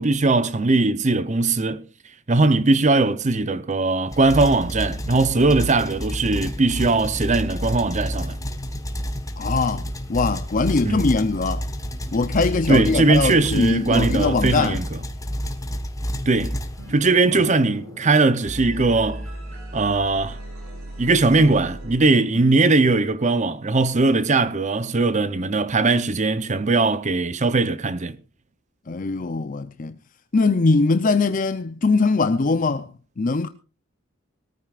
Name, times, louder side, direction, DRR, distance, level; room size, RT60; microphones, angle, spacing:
voice 1, 0.0-1.8 2.3-8.4 10.8-11.1 12.7-15.0 16.3-16.6 16.9-19.3 19.7-20.4 21.0-28.2, right 3 dB, 35° right, 0.7 m, -20 dB
sound 1, 4.1-17.3, equal, 15° left, 1.3 m, -29 dB
voice 2, 9.4-11.6 12.1-14.8 17.3-17.5 28.9-30.0 30.3-32.9 33.2-33.5, left 3 dB, 40° left, 0.6 m, -21 dB
sound 2, 16.8-17.2 17.4-22.4, equal, 75° right, 7.1 m, -37 dB
21.5 x 14.0 x 2.5 m
head